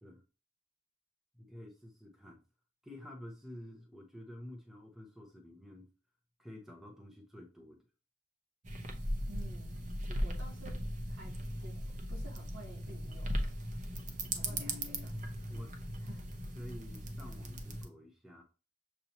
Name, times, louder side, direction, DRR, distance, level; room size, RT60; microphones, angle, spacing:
voice 1, 1.3-2.4 2.8-5.9 6.4-7.8 14.4-15.1 15.5-15.8 16.5-18.4, left 1 dB, ahead, 1 dB, 0.7 m, -50 dB
sound 1, 8.6-17.9, equal, 40° right, 0.7 m, -38 dB
voice 2, 9.3-13.5 14.3-15.1 16.0-16.3, right 2 dB, 70° right, -3 dB, 2.7 m, -53 dB
6.7 x 2.7 x 2.9 m, 0.33 s
head